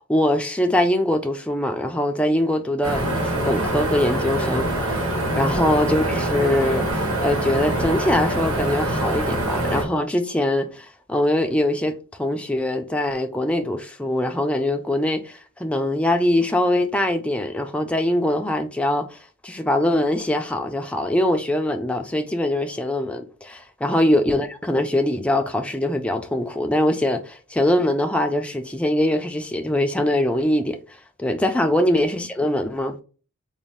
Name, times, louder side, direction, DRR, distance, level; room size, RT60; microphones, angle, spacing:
voice 1, 0.0-33.0, left 1 dB, 5° left, 0.3 m, -23 dB
sound 1, 2.8-9.8, right 1 dB, 80° right, 1.8 m, -24 dB
4.0 x 2.3 x 3.5 m
head